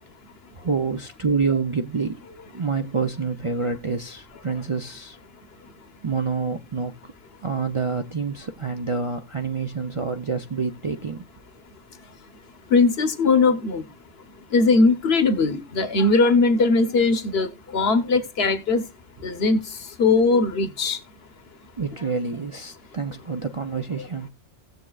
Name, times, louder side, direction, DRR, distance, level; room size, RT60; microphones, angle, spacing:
voice 1, 0.6-5.2 6.0-7.1 7.4-11.2 21.8-24.3, right 5 dB, 35° right, 0.5 m, -27 dB
voice 2, 12.7-13.8 14.5-18.8 19.2-19.6 20.0-21.0, left 3 dB, 60° left, 1.1 m, -19 dB
17.5 x 7.4 x 2.3 m
omnidirectional pair, 1.2 m